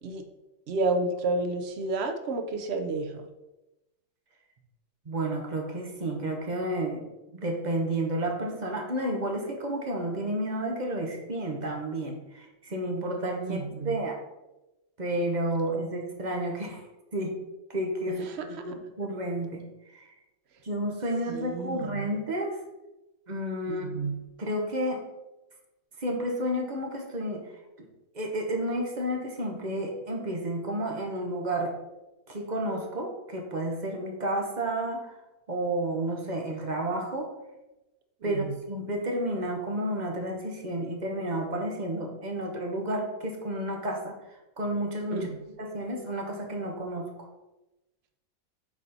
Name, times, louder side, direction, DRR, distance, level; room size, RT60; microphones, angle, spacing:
voice 1, 0.7-3.3 13.4-14.0 18.1-18.5 21.3-22.1 23.7-24.2 38.3-38.6 45.1-45.4, right 3 dB, 65° right, 6 dB, 0.6 m, -31 dB
voice 2, 5.1-7.0 7.3-14.2 15.0-16.8 17.1-17.4 17.7-19.6 19.9-20.0 20.6-22.6 23.3-24.1 24.4-25.0 26.0-27.4 27.8-27.9 28.1-31.8 32.3-35.1 35.5-37.3 38.2-44.2 44.6-45.3 45.6-47.3, right 1 dB, 35° right, 1 dB, 0.8 m, -31 dB
7.3 x 4.2 x 4.0 m, 1.0 s
omnidirectional pair, 1.9 m